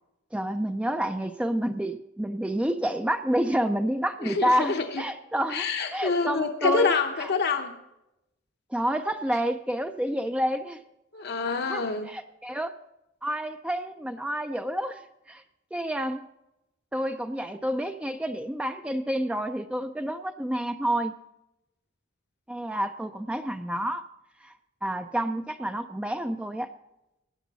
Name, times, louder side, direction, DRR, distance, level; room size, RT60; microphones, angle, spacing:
voice 1, 0.3-7.3 8.7-10.8 11.7-12.7 13.2-15.0 15.3-15.4 15.7-16.3 16.9-21.2 22.5-24.0 24.4-24.5 24.8-26.7, right 1 dB, 5° right, 8 dB, 0.4 m, -29 dB
voice 2, 4.2-5.0 5.5-7.8 11.1-12.1, left 4 dB, 55° left, 4 dB, 0.8 m, -26 dB
16.5 x 9.9 x 4.0 m, 0.90 s
head